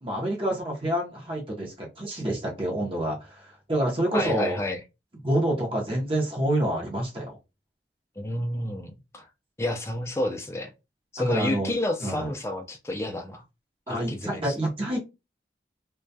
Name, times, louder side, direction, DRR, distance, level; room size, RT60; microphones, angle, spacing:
voice 1, 0.0-4.6 5.2-7.4 11.3-11.7 12.0-12.3 13.9-15.0, right 1 dB, 30° right, 0.6 m, -27 dB
voice 2, 4.1-4.8 8.2-9.3 9.6-10.7 11.1-13.4 13.9-14.5, left 1 dB, 15° left, 0.3 m, -30 dB
2.2 x 2.1 x 2.6 m
head